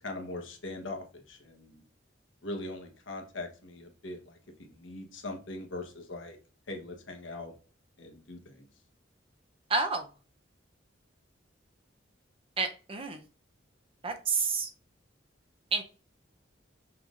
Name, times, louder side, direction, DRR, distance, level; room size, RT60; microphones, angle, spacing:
voice 1, 0.0-1.8 2.4-6.4 6.7-7.5 8.0-8.7, left 2 dB, 80° left, 3 dB, 1.2 m, -41 dB
voice 2, 9.7-10.1 12.6-13.2 14.0-14.7 15.7-15.8, right 4 dB, 30° right, 5 dB, 0.7 m, -29 dB
5.9 x 3.3 x 2.5 m, 0.36 s
head